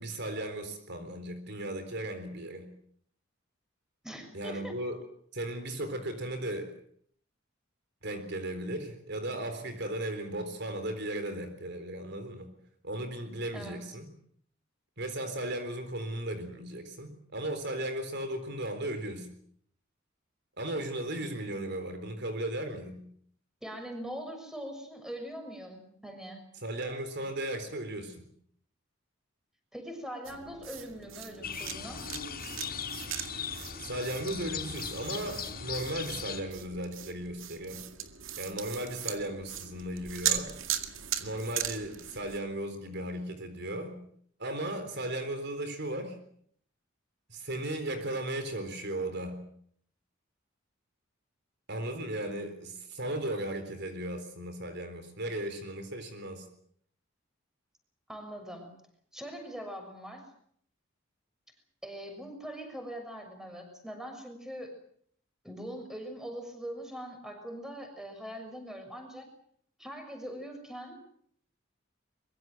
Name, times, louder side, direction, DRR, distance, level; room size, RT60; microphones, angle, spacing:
voice 1, 0.0-2.7 4.3-5.0 5.3-6.8 8.0-12.5 12.8-14.1 15.0-19.3 20.6-23.1 26.6-28.3 33.8-37.8 38.4-40.6 41.2-44.0 44.4-46.2 47.3-49.4 51.7-56.4, right 1 dB, 60° right, 8 dB, 3.9 m, -36 dB
voice 2, 4.0-4.7 13.5-13.8 23.6-26.4 29.7-32.0 58.1-58.8 59.1-60.3 61.8-64.8 65.4-69.3 69.8-71.0, equal, 5° right, 5 dB, 6.5 m, -42 dB
sound 1, 30.2-42.4, right 10 dB, 80° right, 2.1 m, -39 dB
sound 2, 31.4-36.4, left 6 dB, 50° left, 4.7 m, -39 dB
24.0 x 23.0 x 7.8 m, 0.63 s
head